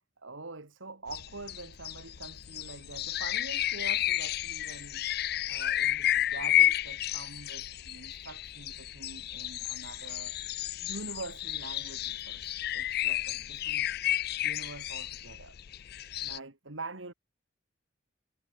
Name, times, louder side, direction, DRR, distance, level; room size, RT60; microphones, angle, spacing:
voice 1, 0.2-5.1 5.5-10.4 10.8-12.4 12.7-13.9 14.4-15.6 16.2-17.1, right 3 dB, 85° right, 2.6 m, -45 dB
sound 1, 1.1-16.4, left 13 dB, 55° left, 0.5 m, -32 dB
head